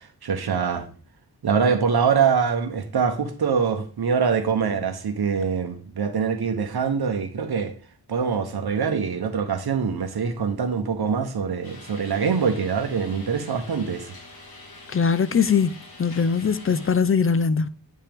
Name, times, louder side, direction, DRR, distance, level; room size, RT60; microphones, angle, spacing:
voice 1, 0.2-0.9 1.4-7.7 8.1-14.2, right 6 dB, 65° right, 1.0 m, -24 dB
sound 1, 11.6-16.9, left 2 dB, 60° left, 1.6 m, -45 dB
voice 2, 14.9-15.7 16.0-17.7, left 6 dB, 35° left, 0.4 m, -21 dB
8.8 x 5.6 x 3.5 m
wide cardioid pair, 120°, 41 cm